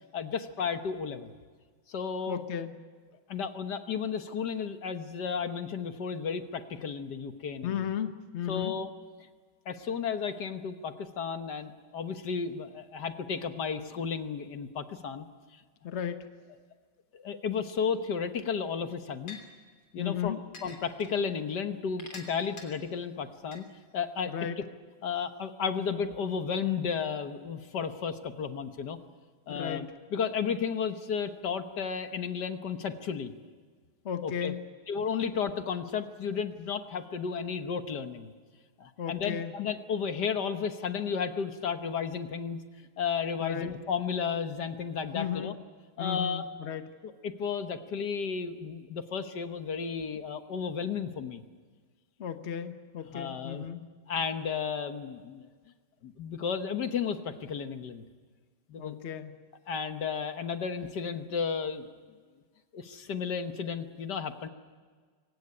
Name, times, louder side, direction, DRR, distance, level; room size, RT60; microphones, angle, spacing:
voice 1, 0.1-1.3 1.9-2.4 3.3-7.9 8.5-8.9 9.6-15.3 17.1-19.4 19.9-23.6 23.9-24.6 25.0-29.0 29.5-29.9 30.1-33.3 34.2-34.5 34.9-38.3 38.8-45.5 46.0-46.5 47.0-51.4 53.1-53.7 54.1-55.5 56.0-58.0 58.7-59.0 59.7-61.9 62.7-64.5, left 6 dB, 60° left, 8 dB, 1.7 m, -33 dB
voice 2, 2.3-2.8 7.6-8.8 15.8-16.3 20.0-20.4 24.3-24.6 29.5-29.9 34.0-34.7 39.0-39.5 43.4-43.7 45.1-45.6 46.0-46.9 52.2-53.8 58.8-59.3, left 9 dB, 40° left, 8 dB, 1.1 m, -35 dB
sound 1, 18.3-18.4 19.3-19.4 20.5-21.1 22.0-22.6 23.5-23.6, left 3 dB, 85° left, 4.3 m, -44 dB
24.0 x 18.0 x 9.8 m, 1.5 s
omnidirectional pair, 2.3 m